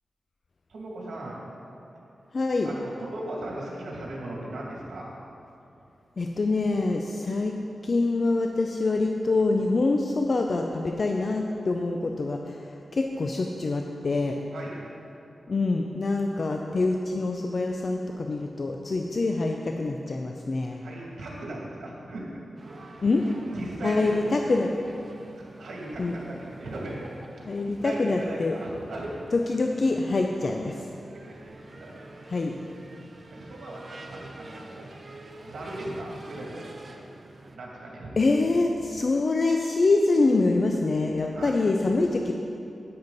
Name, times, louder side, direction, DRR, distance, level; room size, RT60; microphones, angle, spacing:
voice 1, 0.7-1.5 1.9-2.0 2.6-5.1 14.5-14.8 20.7-22.4 22.9-23.1 23.5-24.2 25.4-27.0 27.6-29.1 31.1-32.1 33.3-34.9 35.4-36.7 37.5-38.1 41.3-41.5, right 1 dB, 80° right, -3 dB, 2.4 m, -38 dB
voice 2, 2.3-2.7 6.2-7.6 7.8-14.4 15.5-20.8 23.0-23.2 23.8-24.7 26.0-26.1 27.5-28.5 29.3-30.8 32.3-32.5 38.2-42.3, left 3 dB, 45° left, 2 dB, 0.5 m, -25 dB
sound 1, 22.6-37.6, right 2 dB, 40° right, 0.7 m, -46 dB
10.5 x 8.6 x 4.0 m, 2.7 s
wide cardioid pair, 130°, 0 cm